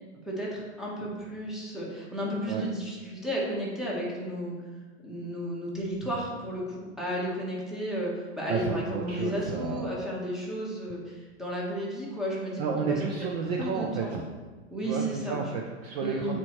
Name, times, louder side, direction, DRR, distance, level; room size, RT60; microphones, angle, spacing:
voice 1, 0.2-4.5 5.0-13.0 13.5-14.2 14.7-15.4 16.0-16.4, equal, ahead, -5 dB, 1.2 m, -33 dB
voice 2, 8.5-9.8 12.6-14.2 14.8-16.4, right 5 dB, 35° right, 1 dB, 0.5 m, -31 dB
7.9 x 4.4 x 3.1 m, 1.4 s
hypercardioid pair, 145°, 35 cm